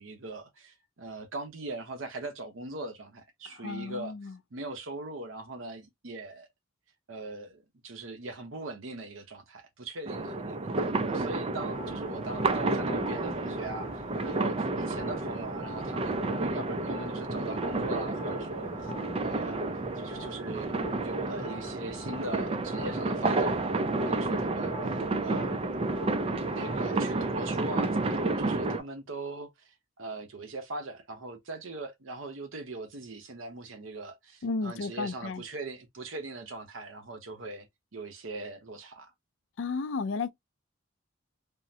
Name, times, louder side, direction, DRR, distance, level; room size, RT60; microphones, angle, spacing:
voice 1, 0.0-6.5 7.1-18.9 19.2-19.6 20.0-20.8 21.0-23.7 24.0-25.6 26.5-37.7 37.9-39.1, right 2 dB, 85° right, 0.8 m, -40 dB
voice 2, 3.6-4.3 34.4-35.4 39.6-40.3, left 4 dB, 70° left, 0.4 m, -33 dB
sound 1, 10.1-28.8, right 2 dB, 30° right, 0.3 m, -31 dB
sound 2, 11.7-28.7, left 2 dB, 25° left, 0.9 m, -45 dB
3.7 x 2.0 x 2.7 m
head